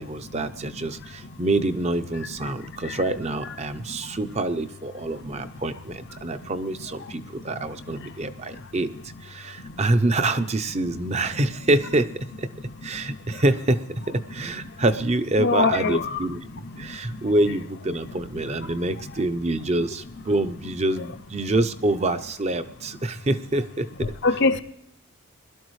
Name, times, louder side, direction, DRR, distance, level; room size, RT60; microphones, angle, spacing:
voice 1, 0.0-8.9 9.2-12.1 12.4-12.5 12.8-13.8 14.1-23.9 24.3-24.4, right 2 dB, 30° right, 10 dB, 0.6 m, -26 dB
voice 2, 15.4-16.2 24.2-24.6, left 3 dB, 50° left, 9 dB, 0.6 m, -21 dB
21.0 x 12.0 x 3.2 m, 0.75 s
head